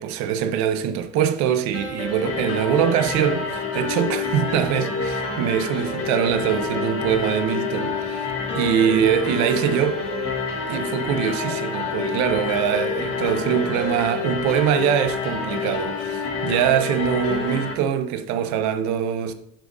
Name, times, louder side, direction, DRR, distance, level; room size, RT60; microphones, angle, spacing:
voice 1, 0.0-10.0 10.7-19.3, right 9 dB, 60° right, 0.9 m, -23 dB
sound 1, 1.7-17.7, left 4 dB, 50° left, 3.2 m, -28 dB
10.0 x 6.9 x 2.6 m
hypercardioid pair, 70°, 31 cm